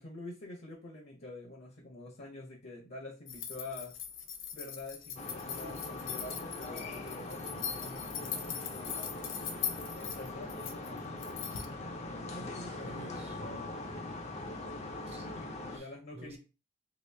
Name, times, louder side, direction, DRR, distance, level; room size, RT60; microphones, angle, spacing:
voice 1, 0.0-3.9 4.5-9.2 9.9-11.6 12.0-13.5 15.6-16.4, left 2 dB, 55° left, 0.9 m, -47 dB
sound 1, 3.3-11.7, left 8 dB, 80° left, 0.6 m, -41 dB
sound 2, 5.2-15.8, left 2 dB, 35° left, 0.5 m, -41 dB
voice 2, 12.7-14.1 15.1-16.4, right 2 dB, 35° right, 0.6 m, -53 dB
3.0 x 3.0 x 3.3 m
head